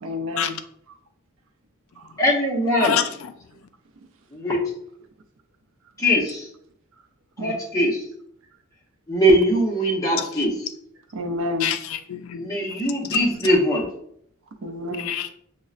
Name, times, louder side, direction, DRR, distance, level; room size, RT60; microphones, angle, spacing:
voice 1, 0.0-0.6 2.0-2.2 3.5-3.6 7.4-7.5 11.1-11.7 14.6-15.1, left 2 dB, 70° right, 0.5 m, -30 dB
voice 2, 2.2-3.0 4.3-4.6 6.0-6.5 7.4-8.0 9.1-10.5 12.3-13.9, equal, 15° left, 0.9 m, -21 dB
voice 3, 2.8-3.3 10.2-10.3 11.6-12.5 15.0-15.3, left 9 dB, 75° left, 0.3 m, -26 dB
6.3 x 2.1 x 2.4 m
head